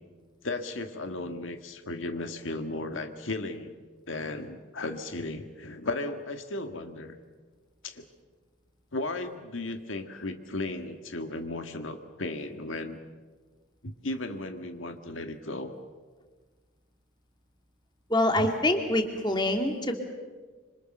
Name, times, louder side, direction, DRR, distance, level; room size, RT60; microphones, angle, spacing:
voice 1, 0.4-3.8 4.1-7.2 7.8-8.1 8.9-13.0 13.8-15.8 18.4-18.5, left 2 dB, 80° left, 6 dB, 1.8 m, -35 dB
voice 2, 18.1-20.0, left 1 dB, 20° left, 4 dB, 2.3 m, -25 dB
26.5 x 26.0 x 6.6 m, 1.4 s
head